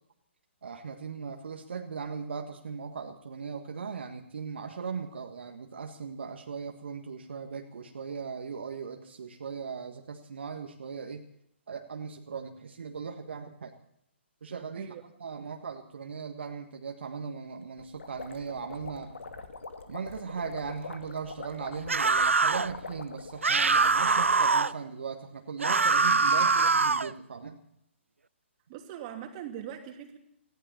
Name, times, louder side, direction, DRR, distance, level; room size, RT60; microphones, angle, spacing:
voice 1, 0.6-11.3 11.7-13.7 14.4-19.1 19.9-27.6, right 5 dB, 60° right, 3 dB, 1.7 m, -38 dB
sound 1, 17.8-24.6, left 4 dB, 70° left, 2.0 m, -44 dB
sound 2, 21.9-22.7 23.4-24.7 25.6-27.1, right 4 dB, 80° right, 0.6 m, -23 dB
voice 2, 28.7-30.2, right 10 dB, 30° right, 4 dB, 2.6 m, -41 dB
19.0 x 16.0 x 4.3 m, 0.73 s
figure-of-eight pair, 130°, 7 cm